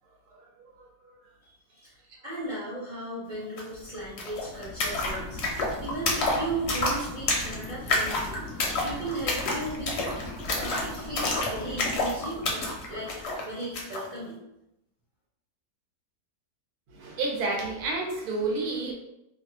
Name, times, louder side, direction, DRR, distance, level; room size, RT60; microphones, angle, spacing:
voice 1, 0.7-1.2 6.0-6.2 16.9-18.9, right 3 dB, 75° right, -1 dB, 1.2 m, -31 dB
voice 2, 1.4-1.9 2.2-13.1 13.4-14.4, right 2 dB, 50° right, -8 dB, 0.6 m, -37 dB
sound 1, 3.6-3.7 3.9-14.1, left 2 dB, 65° left, 0.7 m, -30 dB
2.7 x 2.4 x 2.6 m, 0.85 s
omnidirectional pair, 1.6 m